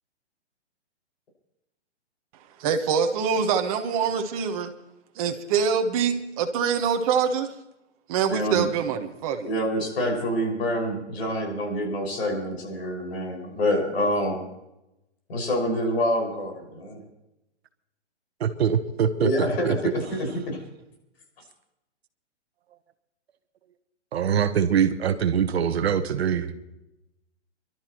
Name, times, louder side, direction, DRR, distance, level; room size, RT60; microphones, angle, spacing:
voice 1, 2.6-4.7 5.2-7.5 8.1-9.5, right 6 dB, 30° right, 1.2 m, -24 dB
voice 2, 8.3-8.7 9.4-14.5 15.3-17.0 19.2-19.8 20.1-20.6, equal, 65° left, 5.9 m, -27 dB
voice 3, 18.4-19.8 24.1-26.5, right 8 dB, 60° right, 1.2 m, -23 dB
28.5 x 12.0 x 3.1 m
hypercardioid pair, 150°, 35 cm